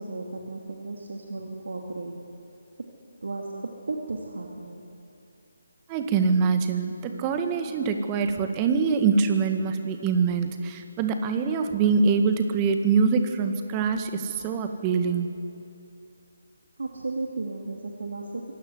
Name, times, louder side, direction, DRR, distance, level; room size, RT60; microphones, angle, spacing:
voice 1, 0.0-2.3 3.2-4.9 16.8-18.6, right 3 dB, 65° right, 1 dB, 2.6 m, -34 dB
voice 2, 5.9-15.3, right 5 dB, 20° right, 6 dB, 1.8 m, -24 dB
25.5 x 17.0 x 9.6 m, 2.6 s
figure-of-eight pair, 150°, 0 cm